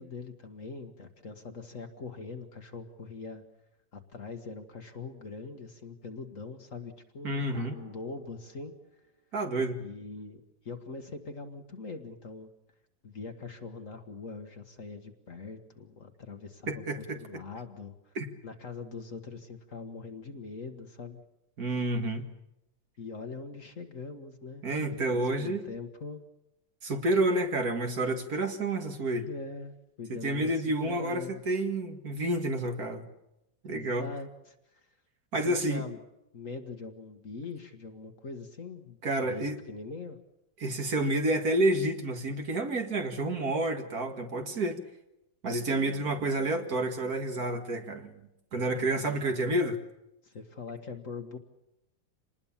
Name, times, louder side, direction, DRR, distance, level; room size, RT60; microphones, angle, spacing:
voice 1, 0.0-3.4 3.9-7.5 7.7-8.7 9.8-12.5 13.0-18.1 18.4-21.2 23.0-24.6 25.1-26.2 29.3-31.4 33.7-34.8 35.4-36.0 36.3-40.2 49.1-49.3 50.2-51.4, left 4 dB, 45° left, 7 dB, 1.8 m, -42 dB
voice 2, 7.2-7.8 9.3-9.8 16.7-17.4 18.2-18.3 21.6-22.3 24.6-25.6 26.8-29.3 30.1-33.0 33.6-34.1 35.3-35.8 39.0-39.6 40.6-44.8 45.4-48.1 48.5-49.8, right 1 dB, 50° right, 5 dB, 2.2 m, -29 dB
Drum, 7.5-9.8, right 1 dB, 35° right, 3.9 m, -52 dB
26.5 x 20.0 x 7.3 m, 0.87 s
omnidirectional pair, 2.0 m